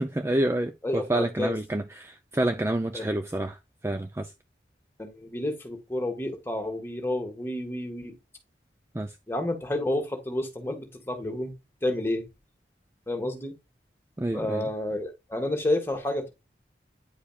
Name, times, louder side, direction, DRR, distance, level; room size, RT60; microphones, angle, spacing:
voice 1, 0.0-4.3 8.9-9.1 14.2-14.6, right 1 dB, 15° right, 0.4 m, -28 dB
voice 2, 0.8-1.5 2.9-3.1 5.0-8.1 9.3-11.5 11.8-12.2 13.1-13.5 14.3-16.3, left 1 dB, 15° left, 1.6 m, -30 dB
9.8 x 4.9 x 2.3 m
head